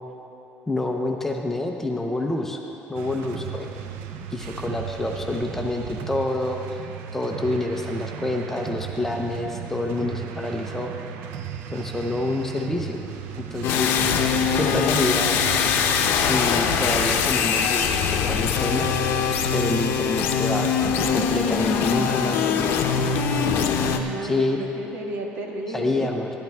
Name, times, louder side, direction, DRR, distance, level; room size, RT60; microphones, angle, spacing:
voice 1, 0.7-2.6 2.9-3.7 4.3-6.8 7.1-10.9 11.7-13.0 13.4-14.2 14.5-15.3 16.1-18.9 19.5-20.7 21.1-22.7 24.2-24.6 25.7-26.3, left 2 dB, 10° left, 2 dB, 0.7 m, -27 dB
sound 1, 2.9-17.3, right 8 dB, 85° right, 0.6 m, -36 dB
sound 2, 13.6-24.0, left 6 dB, 70° left, 0.7 m, -22 dB
voice 2, 23.8-26.1, right 2 dB, 60° right, 0 dB, 1.6 m, -32 dB
14.5 x 12.0 x 3.5 m, 3.0 s
cardioid pair, 140°, 4 cm